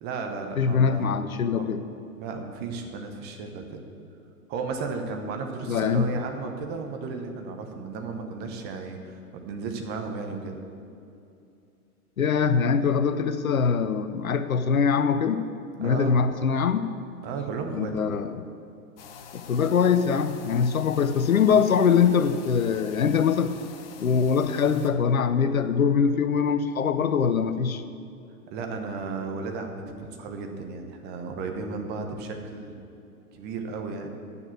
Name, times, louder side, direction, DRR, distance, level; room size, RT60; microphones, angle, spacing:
voice 1, 0.0-1.7 2.2-3.8 4.5-10.6 15.8-16.2 17.2-18.2 28.5-32.8 33.3-34.1, right 4 dB, 20° right, 4 dB, 1.0 m, -34 dB
voice 2, 0.6-1.8 5.7-6.2 12.2-15.5 15.8-16.9 17.7-18.5 19.5-23.5 24.0-27.8, left 6 dB, 65° left, 11 dB, 0.7 m, -23 dB
sound 1, 19.0-24.9, left 6 dB, 40° left, 0.9 m, -46 dB
8.5 x 6.8 x 8.4 m, 2.6 s
figure-of-eight pair, 110°, 45 cm